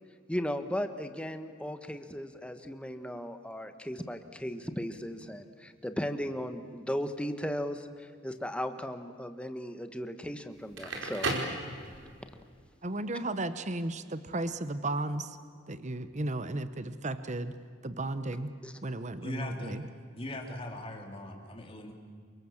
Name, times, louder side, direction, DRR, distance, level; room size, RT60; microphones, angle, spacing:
voice 1, 0.3-11.3 18.6-18.7, equal, 5° left, 8 dB, 1.4 m, -36 dB
Crackle, 10.6-12.3, right 2 dB, 75° right, 4.8 m, -34 dB
voice 2, 12.8-15.4 15.7-17.5 17.8-18.5 18.8-19.8, right 2 dB, 35° right, 12 dB, 1.0 m, -34 dB
voice 3, 19.2-19.8 20.1-21.9, left 1 dB, 30° left, 2 dB, 3.4 m, -40 dB
28.5 x 25.0 x 7.3 m, 2.2 s
head